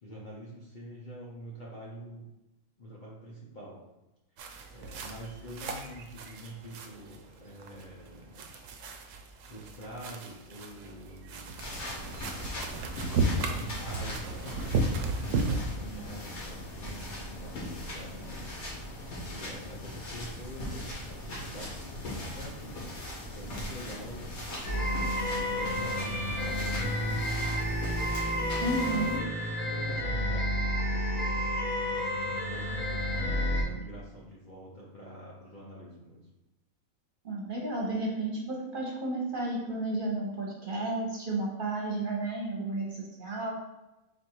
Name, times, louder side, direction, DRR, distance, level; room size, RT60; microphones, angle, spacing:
voice 1, 0.0-2.3 2.8-3.8 4.7-8.5 9.5-11.8 13.6-14.8 15.4-18.4 19.1-22.8 23.3-24.7 25.3-27.3 28.6-31.4 32.2-36.3, equal, 45° left, -5 dB, 0.7 m, -45 dB
sound 1, 4.4-15.6, right 3 dB, 70° right, 0.9 m, -34 dB
sound 2, 11.6-29.2, left 1 dB, 85° left, 1.8 m, -40 dB
sound 3, 24.6-33.6, equal, 70° left, 1.3 m, -30 dB
voice 2, 28.6-29.2 37.2-43.5, right 2 dB, 45° right, -3 dB, 1.0 m, -32 dB
4.1 x 2.5 x 4.4 m, 0.98 s
omnidirectional pair, 1.5 m